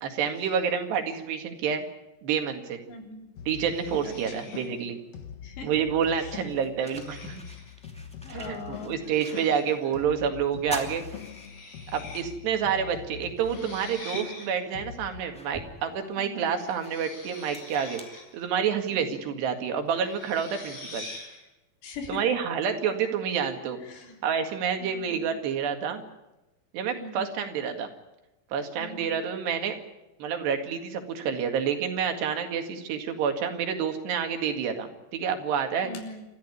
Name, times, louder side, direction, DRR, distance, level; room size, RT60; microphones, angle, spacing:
voice 1, 0.0-1.8 2.2-2.8 3.5-5.0 5.6-7.4 8.3-8.6 8.8-11.0 11.9-18.0 18.3-21.1 22.1-23.8 24.2-26.0 26.7-27.9 28.5-29.8 30.2-35.9, right 7 dB, 75° right, 5 dB, 4.0 m, -28 dB
voice 2, 2.9-3.3 4.0-4.5 5.4-5.8 6.2-6.4 8.2-8.9 9.3-9.5 16.2-16.6 18.9-19.3 21.8-22.2 23.8-24.1 24.8-25.4 27.0-27.4 28.8-29.2 35.8-36.2, left 3 dB, 75° left, 2 dB, 5.8 m, -41 dB
sound 1, 3.4-15.2, left 8 dB, 60° left, 1.7 m, -43 dB
sound 2, 3.5-4.8 6.0-6.3 6.8-7.8 9.0-9.8 11.1-12.2 12.5-12.6 13.4-14.5 16.4-18.4 19.9-21.4, left 2 dB, 40° left, 7.3 m, -45 dB
sound 3, 5.8-5.9 6.4-9.8 10.1-10.2 10.6-12.1 12.5-12.6 14.0-14.1 14.7-18.9, equal, 5° left, 1.3 m, -44 dB
28.0 x 14.0 x 9.8 m, 0.98 s
omnidirectional pair, 5.0 m